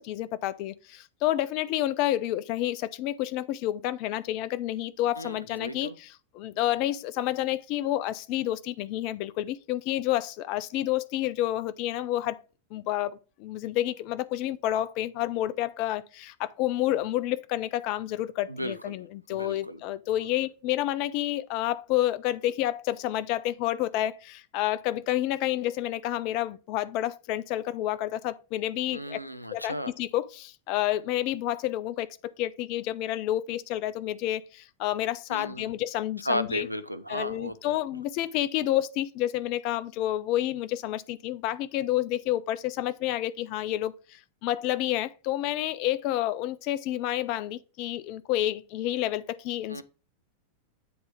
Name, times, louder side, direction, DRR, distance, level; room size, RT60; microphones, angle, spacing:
voice 1, 0.1-0.7 1.2-5.9 6.6-9.2 9.7-10.2 10.5-12.3 12.7-13.1 13.5-13.9 14.3-16.0 16.6-18.3 18.6-19.0 19.3-22.7 23.0-24.1 24.5-28.1 28.5-29.0 29.5-29.7 30.1-30.2 30.7-32.1 32.4-34.4 34.8-36.7 37.1-41.0 41.2-43.9 44.4-47.5 47.8-49.2 49.5-49.8, left 14 dB, 45° left, 0.4 m, -29 dB
voice 2, 5.2-6.0 18.5-19.0 19.3-19.8 20.1-20.3 28.9-29.9 35.3-35.7 36.2-37.8 49.7-49.8, equal, 90° right, 0.5 m, -34 dB
7.8 x 3.3 x 4.9 m
figure-of-eight pair, 90°, 0 cm